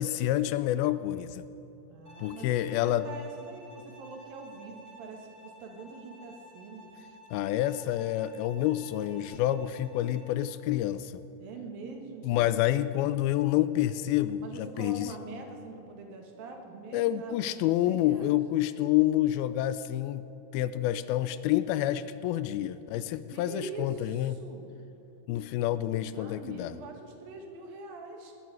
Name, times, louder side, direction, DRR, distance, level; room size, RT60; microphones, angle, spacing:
voice 1, 0.0-1.5 2.2-3.1 7.3-11.2 12.2-15.1 16.9-20.3 20.5-24.4 25.3-26.7, left 13 dB, 85° left, 14 dB, 2.3 m, -28 dB
voice 2, 1.9-6.9 11.4-12.4 14.4-18.4 23.3-24.7 26.1-28.3, right 3 dB, 70° right, 3 dB, 3.2 m, -44 dB
Bowed string instrument, 2.0-10.4, equal, 15° right, 1.5 m, -53 dB
18.5 x 7.9 x 9.8 m, 2.9 s
omnidirectional pair, 4.5 m